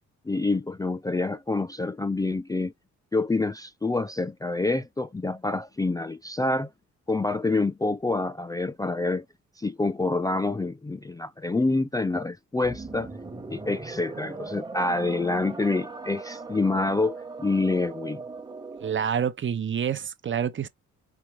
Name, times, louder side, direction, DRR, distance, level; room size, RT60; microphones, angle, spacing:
voice 1, 0.3-2.7 3.1-6.7 7.1-9.2 9.6-13.1 13.5-18.2, left 3 dB, 10° left, 0.4 m, -27 dB
sound 1, 12.6-19.1, right 3 dB, 15° right, 1.1 m, -39 dB
voice 2, 18.8-20.7, right 8 dB, 40° right, 0.7 m, -27 dB
4.8 x 2.8 x 3.1 m
cardioid pair, 90°, 30 cm